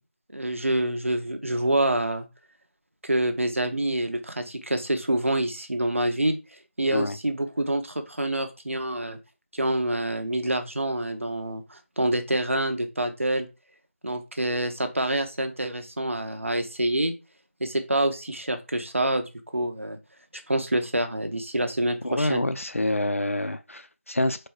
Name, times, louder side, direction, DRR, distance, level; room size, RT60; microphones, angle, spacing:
voice 1, 0.3-2.3 3.0-6.4 6.8-9.2 9.5-13.5 14.0-17.1 17.6-19.2 19.5-20.0 20.5-22.4, right 1 dB, 70° right, 1.1 m, -26 dB
voice 2, 22.0-24.5, left 1 dB, 80° left, 0.6 m, -27 dB
4.5 x 2.3 x 4.5 m
figure-of-eight pair, 175°, 7 cm